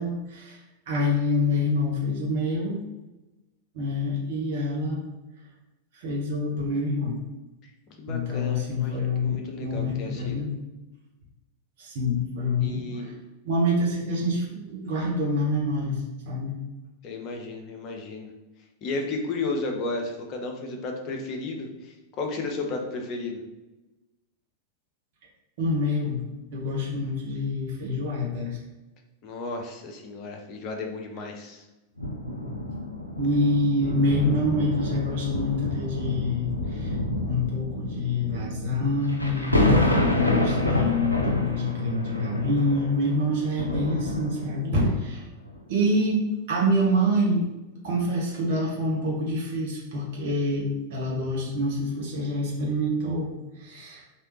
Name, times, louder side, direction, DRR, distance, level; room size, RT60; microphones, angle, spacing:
voice 1, 0.0-2.8 3.7-5.0 5.9-7.2 8.1-10.5 11.8-13.1 13.4-16.6 25.6-26.2 26.5-28.6 33.2-45.3 45.7-46.2 46.5-47.5 47.8-54.0, left 1 dB, 55° right, -2 dB, 0.9 m, -26 dB
voice 2, 7.6-10.4 12.6-13.1 17.0-18.3 18.8-23.4 29.2-31.7, left 3 dB, 35° left, 2 dB, 0.8 m, -33 dB
sound 1, 32.0-44.8 45.4-45.6, left 1 dB, 85° left, 0.5 m, -28 dB
3.3 x 2.9 x 2.9 m, 1.0 s
figure-of-eight pair, 90°, 0 cm